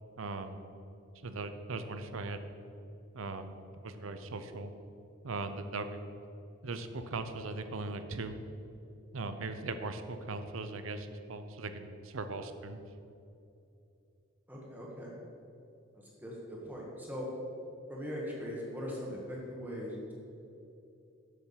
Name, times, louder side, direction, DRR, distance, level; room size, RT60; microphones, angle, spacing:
voice 1, 0.2-0.6 1.2-2.4 3.1-3.5 3.8-4.7 5.2-6.0 6.6-8.4 9.1-12.8, right 3 dB, 80° right, 9 dB, 0.7 m, -39 dB
voice 2, 14.5-15.1 16.2-17.3 17.9-20.1, equal, 10° right, -4 dB, 1.4 m, -40 dB
7.9 x 7.0 x 5.7 m, 2.7 s
head